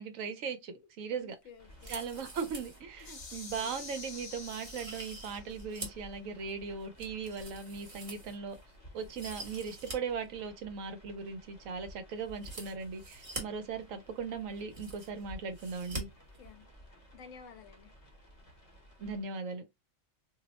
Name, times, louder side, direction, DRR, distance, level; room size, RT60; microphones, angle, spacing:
voice 1, 0.0-1.3 1.9-8.6 8.9-16.1 19.0-19.6, right 5 dB, 75° right, 1.0 m, -38 dB
voice 2, 1.1-2.1 3.3-3.7 16.4-16.7 17.1-17.9, left 6 dB, 75° left, 0.9 m, -53 dB
sound 1, 1.6-19.2, equal, 30° left, 0.9 m, -56 dB
sound 2, 1.7-2.8 3.2-3.3 3.8-4.0 4.4-6.1 6.5-8.6 9.0-10.0 10.2-10.3 12.3-13.4 14.2-14.3 14.5-15.2 15.5-16.0 16.3-16.4, right 2 dB, 25° right, 1.0 m, -45 dB
sound 3, 3.0-5.6, left 4 dB, 50° left, 1.2 m, -47 dB
2.7 x 2.0 x 4.0 m
omnidirectional pair, 1.4 m